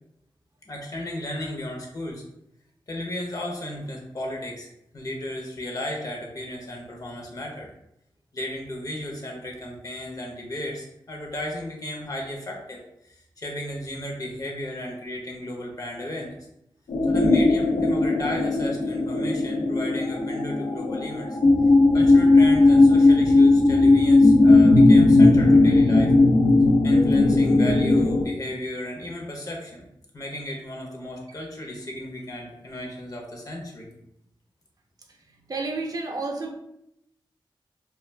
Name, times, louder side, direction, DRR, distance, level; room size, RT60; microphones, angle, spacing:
voice 1, 0.7-2.2 2.9-4.7 4.9-7.7 8.3-16.4 17.1-21.4 21.9-26.1 26.8-29.9 30.1-33.9, left 1 dB, 40° left, -1 dB, 0.7 m, -34 dB
sound 1, 16.9-28.3, left 2 dB, 75° left, 0.5 m, -17 dB
voice 2, 35.5-36.5, right 3 dB, 45° right, 1 dB, 0.5 m, -30 dB
2.3 x 2.2 x 3.3 m, 0.80 s
cardioid pair, 65°, 9 cm